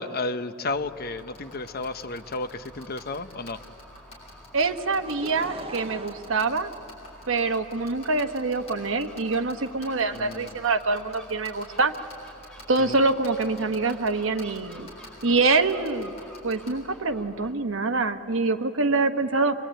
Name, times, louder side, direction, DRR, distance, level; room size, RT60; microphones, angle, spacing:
voice 1, 0.0-3.6 10.1-10.5 12.9-13.0, left 3 dB, 50° left, 10 dB, 0.8 m, -32 dB
Gull seagull, 0.7-17.5, equal, 5° left, 2.2 m, -49 dB
sound 1, 1.2-16.7, left 1 dB, 30° left, 7.5 m, -45 dB
voice 2, 4.5-6.7 7.3-11.9 12.7-14.9 15.2-16.1 16.4-19.5, right 3 dB, 75° right, 7 dB, 1.1 m, -25 dB
Laughter / Crowd, 4.9-7.5 8.2-8.3, right 3 dB, 30° right, 0.9 m, -41 dB
25.5 x 22.5 x 9.0 m, 2.7 s
head